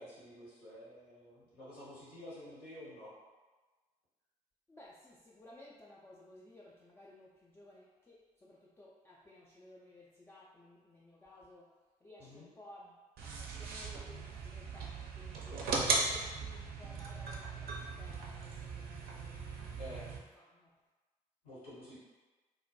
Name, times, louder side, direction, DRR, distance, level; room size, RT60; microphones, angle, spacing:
voice 1, 0.0-3.1 12.2-12.5 15.5-16.1 19.8-20.1 21.4-22.0, left 1 dB, 80° left, -9 dB, 0.9 m, -50 dB
voice 2, 4.7-7.3 7.6-7.8 8.8-11.6 12.0-12.9 13.6-15.5 16.4-18.4 18.7-19.0 19.3-19.5, left 1 dB, 10° left, -5 dB, 0.3 m, -56 dB
sound 1, 13.2-20.2, right 3 dB, 50° right, 0.4 m, -38 dB
2.2 x 2.1 x 2.6 m, 1.3 s
figure-of-eight pair, 40°, 20 cm